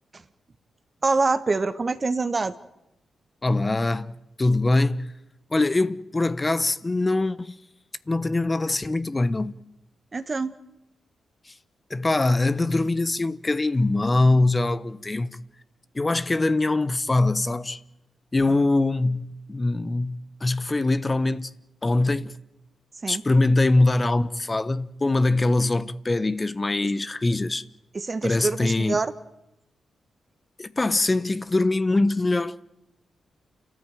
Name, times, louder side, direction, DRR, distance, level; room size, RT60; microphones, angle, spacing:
voice 1, 1.0-2.5 10.1-10.5 23.0-23.2 27.9-29.1, right 3 dB, 40° right, 1.5 m, -25 dB
voice 2, 3.4-5.1 5.5-7.6 8.1-9.6 11.5-11.6 11.9-15.4 15.9-17.8 18.3-21.5 21.8-22.4 23.1-27.6 28.2-29.0 30.6-32.6, left 2 dB, 30° left, 1.1 m, -23 dB
29.0 x 13.5 x 9.2 m
hypercardioid pair, 40°, 0 cm